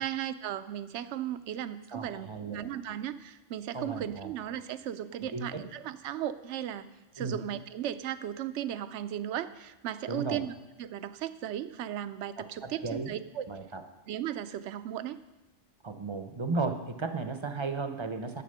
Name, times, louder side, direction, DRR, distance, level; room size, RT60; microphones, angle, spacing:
voice 1, 0.0-6.9 7.1-10.5 10.8-13.5 14.1-15.2, right 11 dB, 70° right, 12 dB, 0.9 m, -36 dB
voice 2, 1.9-2.7 3.7-4.3 5.3-5.5 7.2-7.4 10.1-10.4 12.4-13.1 13.5-13.8 15.8-18.4, right 3 dB, 25° right, 7 dB, 0.7 m, -35 dB
11.0 x 8.5 x 6.6 m, 1.1 s
omnidirectional pair, 1.3 m